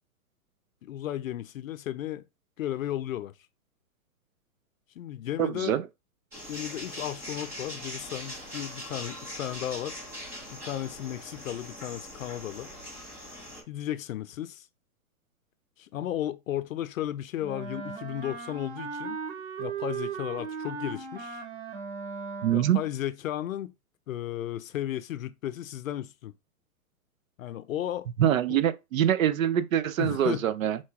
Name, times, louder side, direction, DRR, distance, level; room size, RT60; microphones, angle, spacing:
voice 1, 0.8-2.2 2.6-3.3 5.0-5.8 6.5-10.0 10.5-12.7 13.7-14.7 15.8-19.2 19.6-21.4 22.5-23.7 24.1-26.3 27.4-28.1 28.5-28.6 30.0-30.4, left 12 dB, 65° left, 0.5 m, -34 dB
voice 2, 5.4-5.8 22.4-22.8 28.2-30.8, right 10 dB, 65° right, 0.6 m, -24 dB
sound 1, 6.3-13.6, equal, 5° right, 0.5 m, -41 dB
Wind instrument woodwind instrument, 17.4-22.8, right 5 dB, 45° right, 1.4 m, -37 dB
4.4 x 2.3 x 4.5 m
hypercardioid pair, 135°, 44 cm